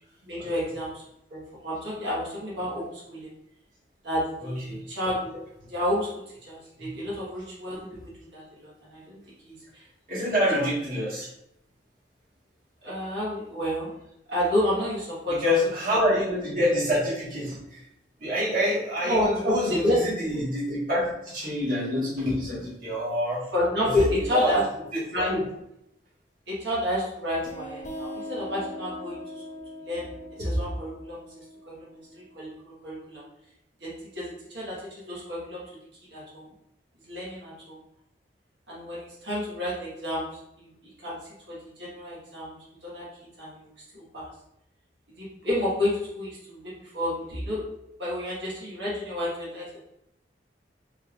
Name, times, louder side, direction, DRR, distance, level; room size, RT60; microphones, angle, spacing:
voice 1, 0.2-1.0 1.3-3.3 4.0-5.3 5.7-6.1 6.5-7.9 8.2-9.5 10.6-10.7 12.8-13.9 14.3-15.5 19.1-20.0 23.5-24.6 25.1-25.3 26.5-29.2 29.8-30.1 30.4-31.2 31.7-31.8 32.1-33.2 33.8-35.6 36.1-36.4 37.1-37.8 38.7-40.3 40.6-40.7 41.0-41.2 41.5-42.6 42.8-43.1 43.4-43.6 43.9-44.3 45.1-47.6 48.0-49.7, left 1 dB, 80° right, -7 dB, 1.5 m, -29 dB
voice 2, 4.4-4.8 6.8-6.9 10.1-11.3 15.3-17.8 18.2-23.4 23.8-24.6 24.9-25.0 25.3-25.4, equal, 50° right, -9 dB, 1.5 m, -27 dB
sound 1, 27.4-32.8, equal, 45° left, 0.8 m, -41 dB
4.0 x 3.4 x 2.5 m, 0.80 s
head